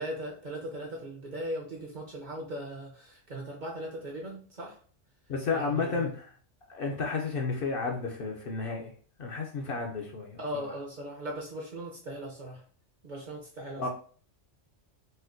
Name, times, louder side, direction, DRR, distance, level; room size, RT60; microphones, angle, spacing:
voice 1, 0.0-4.8 5.5-6.1 10.4-12.6 13.0-13.9, right 1 dB, 50° right, -1 dB, 0.7 m, -38 dB
voice 2, 5.3-6.3 6.7-8.9 9.2-10.7 13.8-13.9, left 4 dB, 60° left, 1 dB, 0.7 m, -32 dB
4.1 x 2.2 x 2.5 m, 0.44 s
omnidirectional pair, 1.3 m